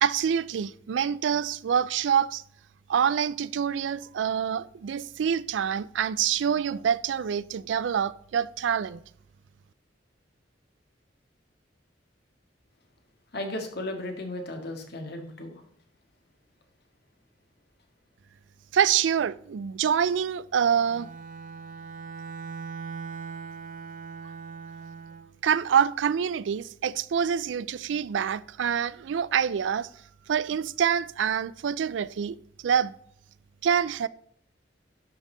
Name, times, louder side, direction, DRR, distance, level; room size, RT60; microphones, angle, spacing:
voice 1, 0.0-2.4 2.9-9.0 18.7-21.1 25.4-29.9 30.3-32.4 32.6-32.9 33.6-34.1, right 8 dB, 80° right, 0.4 m, -26 dB
voice 2, 13.3-15.5, left 1 dB, 60° left, 1.7 m, -35 dB
Bowed string instrument, 20.8-25.3, right 5 dB, 45° right, 0.8 m, -40 dB
11.5 x 5.4 x 3.9 m
head